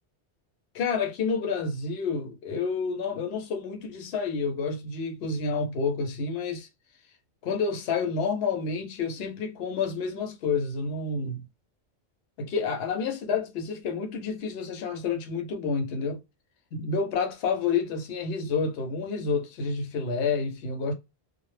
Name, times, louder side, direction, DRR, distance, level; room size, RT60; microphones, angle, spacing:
voice 1, 0.7-6.7 7.4-11.5 12.4-16.2 16.7-20.9, left 5 dB, 70° left, 0.9 m, -29 dB
2.1 x 2.0 x 3.1 m
omnidirectional pair, 1.1 m